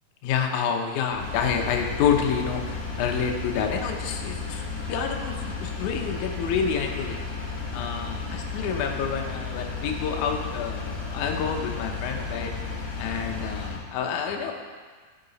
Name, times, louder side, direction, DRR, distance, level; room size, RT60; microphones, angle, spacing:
voice 1, 0.2-4.6 4.9-7.2 7.7-12.5 13.0-14.5, left 7 dB, 75° left, 3 dB, 1.8 m, -28 dB
Engine, 1.1-13.8, left 4 dB, 55° left, 2.4 m, -33 dB
11.0 x 6.5 x 4.0 m, 1.5 s
omnidirectional pair, 4.4 m